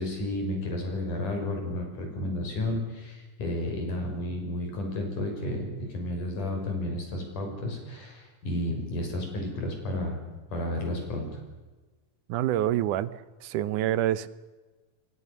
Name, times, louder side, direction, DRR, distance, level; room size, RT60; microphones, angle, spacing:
voice 1, 0.0-10.2 10.5-11.4, left 1 dB, 85° left, 3 dB, 7.6 m, -32 dB
voice 2, 12.3-13.1 13.4-14.3, right 12 dB, 85° right, 17 dB, 2.5 m, -26 dB
28.0 x 22.5 x 6.9 m, 1.2 s
omnidirectional pair, 3.5 m